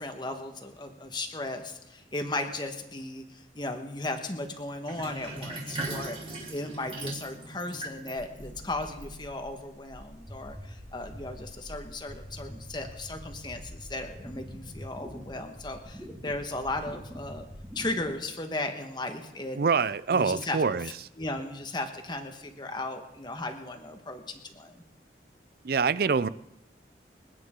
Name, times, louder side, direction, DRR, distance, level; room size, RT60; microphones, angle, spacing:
voice 1, 0.0-17.4 17.7-19.6 20.1-24.8, left 2 dB, 25° left, 1.3 m, -36 dB
Sink (filling or washing), 4.8-9.6, right 2 dB, 30° right, 3.4 m, -39 dB
sound 1, 8.2-18.1, equal, 10° right, 2.1 m, -44 dB
voice 2, 19.6-20.9 25.6-26.3, right 5 dB, 55° right, 0.5 m, -25 dB
27.0 x 9.6 x 3.7 m
head